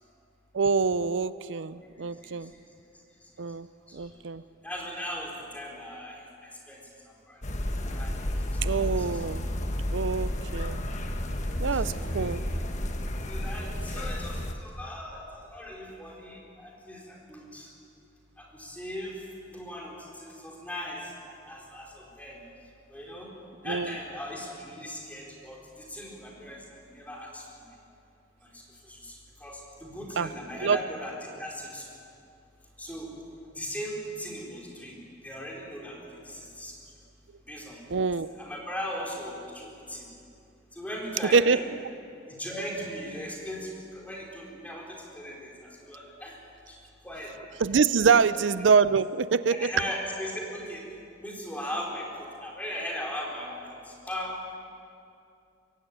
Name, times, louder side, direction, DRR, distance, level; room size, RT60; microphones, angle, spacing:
voice 1, 0.5-2.5 3.4-3.7 3.9-4.4 8.6-9.5 9.9-10.8 11.6-12.4 23.6-23.9 30.2-30.3 30.6-30.8 37.9-38.3 41.3-41.6 47.6-49.7, right 5 dB, 85° right, 15 dB, 0.5 m, -25 dB
voice 2, 1.8-2.6 3.2-3.3 3.9-4.1 4.6-7.4 7.8-8.3 8.7-9.2 11.4-12.5 13.3-17.7 18.4-22.4 22.9-23.3 23.6-27.7 28.4-31.9 32.8-33.1 33.5-35.0 35.2-36.8 37.5-37.8 38.4-40.1 40.7-41.7 42.3-46.4 46.7-46.8 47.0-47.3 48.0-48.2 49.5-50.8 51.2-54.6, equal, 10° left, -2 dB, 4.5 m, -39 dB
sound 1, 7.4-14.5, left 1 dB, 40° left, 1.4 m, -31 dB
23.0 x 16.0 x 9.0 m, 2.6 s
head